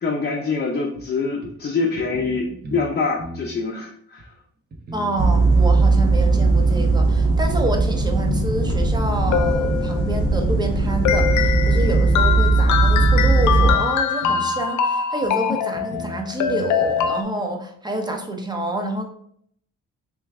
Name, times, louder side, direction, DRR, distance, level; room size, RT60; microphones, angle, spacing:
voice 1, 0.0-4.3, left 4 dB, 35° left, -1 dB, 0.7 m, -25 dB
sound 1, 0.9-1.0 1.4-1.5 2.0-2.9 3.2-3.5 4.2-4.3 4.7-6.5 7.0-7.1 7.6-9.0 9.7-9.8 10.3-12.1 12.4-12.5 13.0-13.9 14.2-14.5 15.2-15.3 15.7-17.1, right 1 dB, 35° right, 1.0 m, -35 dB
voice 2, 4.9-19.1, right 1 dB, 15° right, 3 dB, 0.8 m, -27 dB
sound 2, 5.2-13.7, right 3 dB, 80° right, 1.6 m, -18 dB
sound 3, 9.0-10.3 11.0-17.2, left 8 dB, 70° left, 0.5 m, -23 dB
3.4 x 3.1 x 3.5 m, 0.65 s
cardioid pair, 90°, 30 cm